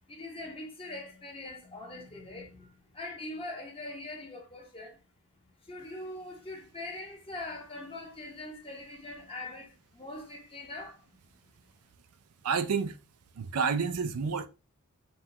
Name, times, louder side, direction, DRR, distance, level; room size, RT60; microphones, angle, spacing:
voice 1, 0.1-5.0 5.6-11.0, left 2 dB, 25° left, 1.1 m, -42 dB
voice 2, 12.4-13.0 13.4-14.5, right 5 dB, 80° right, 0.5 m, -29 dB
5.4 x 2.5 x 2.8 m
head